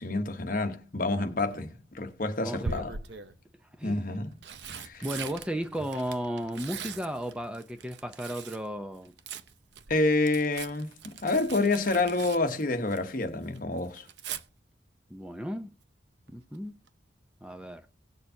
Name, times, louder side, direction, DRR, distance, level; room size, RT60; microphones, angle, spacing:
voice 1, 0.0-2.9 3.8-4.4 4.7-5.0 9.9-14.1, left 2 dB, 45° left, 1.0 m, -28 dB
Tearing, 1.2-1.6 2.6-3.4 4.1-8.7 8.9-13.2 13.5-14.4 16.3-16.6 16.9-17.0, right 5 dB, 65° right, 0.7 m, -41 dB
voice 2, 2.4-2.9 3.8-4.0 5.0-9.1 15.1-15.7 16.3-16.7 17.4-17.8, equal, 5° right, 0.6 m, -34 dB
17.5 x 6.6 x 2.7 m
head